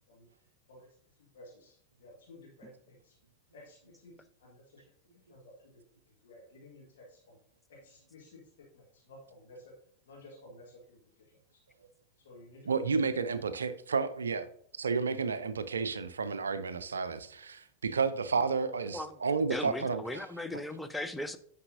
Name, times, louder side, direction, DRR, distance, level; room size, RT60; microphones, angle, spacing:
voice 1, 1.1-3.1 3.5-4.1 4.4-5.7 6.0-7.4 7.7-8.4 8.7-9.7 10.0-11.6 12.2-13.6, left 1 dB, 60° left, 1.6 m, -54 dB
voice 2, 12.7-14.5 14.8-20.3 20.5-20.6, right 5 dB, 70° right, 0.4 m, -31 dB
voice 3, 19.5-21.4, left 1 dB, 5° left, 0.5 m, -37 dB
9.6 x 5.4 x 2.6 m
figure-of-eight pair, 90°, 0 cm